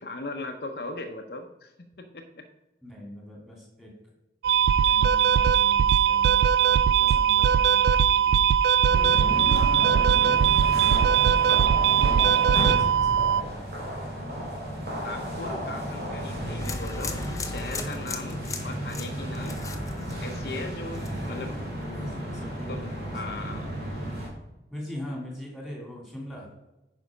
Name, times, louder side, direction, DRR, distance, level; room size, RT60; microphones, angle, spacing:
voice 1, 0.0-2.5 15.0-19.7 20.2-21.5 22.7-23.7, left 2 dB, 65° left, 4 dB, 0.8 m, -38 dB
voice 2, 2.8-3.9 4.8-8.4 9.4-10.3 12.3-13.6 21.3-23.7 24.7-26.5, left 1 dB, ahead, -2 dB, 2.8 m, -42 dB
sound 1, 4.4-13.4, right 8 dB, 75° right, 0.3 m, -20 dB
sound 2, 8.9-24.3, equal, 60° right, 2.9 m, -33 dB
sound 3, 16.6-20.6 20.9-21.4, left 4 dB, 20° left, 0.7 m, -37 dB
9.7 x 5.5 x 5.2 m, 0.99 s
head